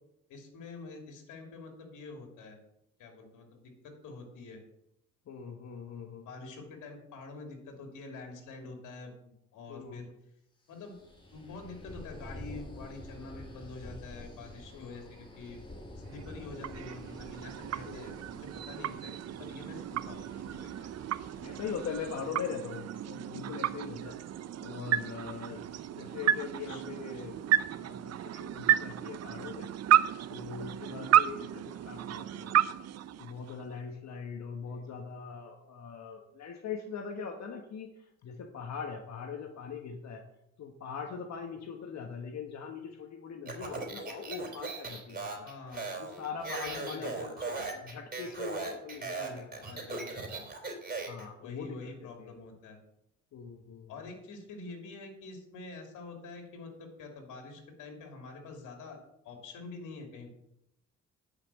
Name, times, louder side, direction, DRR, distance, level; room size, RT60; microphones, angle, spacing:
voice 1, 0.3-2.6 3.0-4.6 6.2-10.1 10.7-11.0 11.3-15.6 16.1-19.1 19.4-21.0 26.7-26.8 34.7-34.8 45.4-46.0 46.6-47.7 49.0-50.5 51.4-52.8 53.9-59.0 59.2-60.3, left 3 dB, 85° left, 3 dB, 2.7 m, -46 dB
voice 2, 5.3-6.3 9.7-10.1 14.7-15.0 16.5-16.8 17.8-18.2 18.8-19.0 21.4-24.2 24.6-29.7 30.3-32.7 33.2-40.2 40.6-45.5 46.0-49.9 51.0-52.3 53.3-54.1, left 6 dB, 65° left, 4 dB, 1.3 m, -42 dB
sound 1, 10.7-22.5, left 1 dB, 15° left, 3.0 m, -49 dB
sound 2, 16.1-33.8, right 11 dB, 55° right, 0.6 m, -32 dB
Speech, 43.4-51.2, right 3 dB, 30° right, 3.4 m, -38 dB
10.5 x 5.9 x 7.4 m, 0.79 s
cardioid pair, 90°, 30 cm